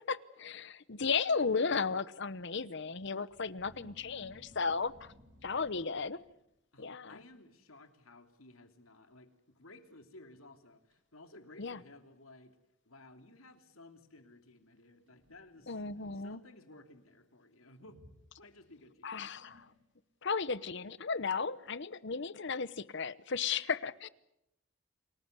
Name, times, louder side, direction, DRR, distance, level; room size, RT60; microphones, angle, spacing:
voice 1, 0.0-4.9 5.4-6.2 6.8-7.2 11.6-11.8 15.7-16.4 19.0-19.7 20.2-24.1, left 5 dB, 55° left, 1.0 m, -35 dB
sound 1, 3.3-6.6 7.2-7.4 7.8-8.2 8.4-8.5 9.3-9.4 9.9-10.0 10.6-11.0 11.8-11.9 14.8-15.8 17.8-18.8 19.3-20.1, left 1 dB, 65° right, 7.3 m, -60 dB
voice 2, 5.4-5.9 6.7-12.6 12.8-15.8 16.1-18.0 18.4-19.2, left 2 dB, 85° left, 3.0 m, -56 dB
29.0 x 20.0 x 8.2 m
head